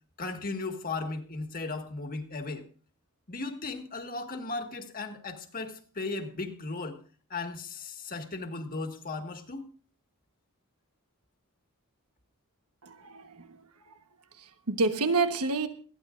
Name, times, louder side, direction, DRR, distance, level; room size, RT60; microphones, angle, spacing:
voice 1, 0.2-2.6 3.3-7.0 7.3-9.7, left 3 dB, 40° left, 1.7 m, -36 dB
voice 2, 12.8-13.9 14.4-15.7, right 3 dB, 85° right, 1.2 m, -29 dB
20.0 x 14.5 x 2.5 m
head